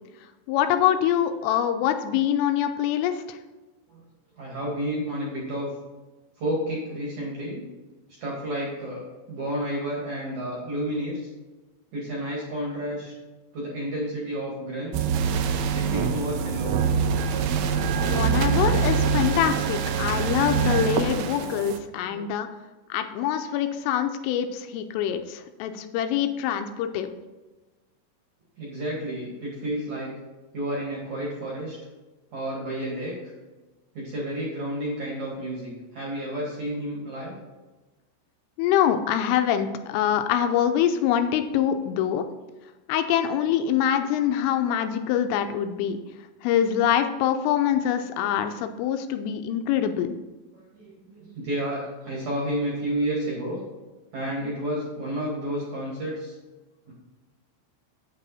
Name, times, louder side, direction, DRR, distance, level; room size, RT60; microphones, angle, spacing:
voice 1, 0.5-3.4 18.0-22.5 22.9-27.1 38.6-42.3 42.9-46.0 46.4-50.2, left 9 dB, 85° left, 7 dB, 3.2 m, -24 dB
voice 2, 4.4-5.7 6.4-7.6 8.2-9.0 9.3-11.3 11.9-13.1 13.5-15.1 15.7-16.8 22.1-22.2 28.6-30.1 30.5-31.8 32.3-33.3 33.9-37.4 50.7-53.6 54.1-56.3 56.9-57.0, right 1 dB, 50° right, -3 dB, 2.5 m, -31 dB
sound 1, 14.9-21.8, right 6 dB, 85° right, 3.0 m, -24 dB
8.9 x 8.1 x 4.2 m, 1.2 s
omnidirectional pair, 5.9 m